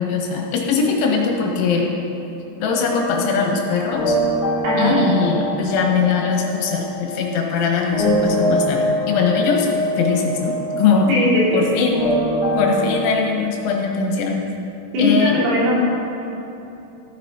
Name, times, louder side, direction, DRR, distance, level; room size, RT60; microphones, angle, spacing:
voice 1, 0.0-1.9 2.6-4.2 4.8-9.7 10.0-11.1 11.5-12.0 12.6-14.5 15.0-15.5, left 5 dB, 80° left, 0 dB, 3.6 m, -21 dB
sound 1, 2.7-13.1, equal, 45° left, 2.7 m, -24 dB
voice 2, 4.6-5.0 11.1-11.6 14.9-15.7, left 1 dB, 85° right, -8 dB, 6.1 m, -18 dB
15.5 x 9.1 x 4.2 m, 3.0 s
omnidirectional pair, 5.7 m